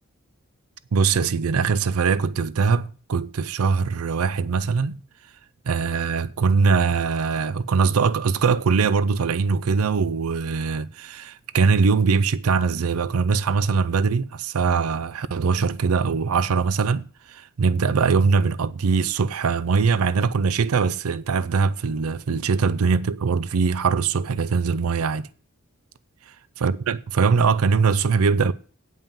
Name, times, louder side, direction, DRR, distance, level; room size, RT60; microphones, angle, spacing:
voice 1, 0.9-5.0 5.7-25.3 26.6-28.5, right 5 dB, 85° right, 0.5 m, -22 dB
9.0 x 5.6 x 7.2 m
head